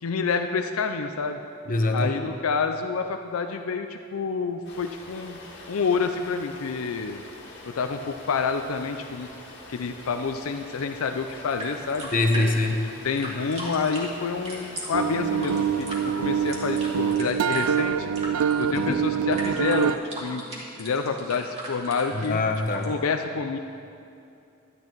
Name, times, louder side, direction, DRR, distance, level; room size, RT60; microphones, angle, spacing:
voice 1, 0.0-1.4 1.9-5.4 5.7-7.2 7.6-9.3 9.7-12.5 13.0-15.9 16.2-18.1 18.6-20.4 20.8-22.4 22.9-23.6, left 5 dB, 85° left, 6 dB, 0.5 m, -28 dB
voice 2, 1.7-2.2 12.1-12.8 18.7-19.1 22.1-22.9, left 2 dB, 40° left, 4 dB, 0.9 m, -24 dB
sound 1, 4.6-17.2, left 2 dB, 55° left, 1.8 m, -45 dB
sound 2, 11.2-22.9, right 1 dB, 30° right, 2.1 m, -39 dB
sound 3, 14.9-20.0, right 8 dB, 85° right, 0.3 m, -25 dB
12.0 x 9.8 x 4.5 m, 2.6 s
head